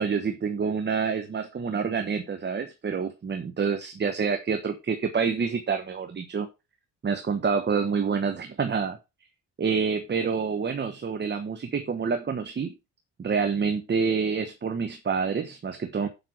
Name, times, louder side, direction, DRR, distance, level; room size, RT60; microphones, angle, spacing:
voice 1, 0.0-6.5 7.0-9.0 9.6-12.7 13.2-16.1, right 5 dB, 35° right, 7 dB, 1.2 m, -27 dB
7.3 x 5.6 x 5.9 m, 0.26 s
cardioid pair, 90°, 30 cm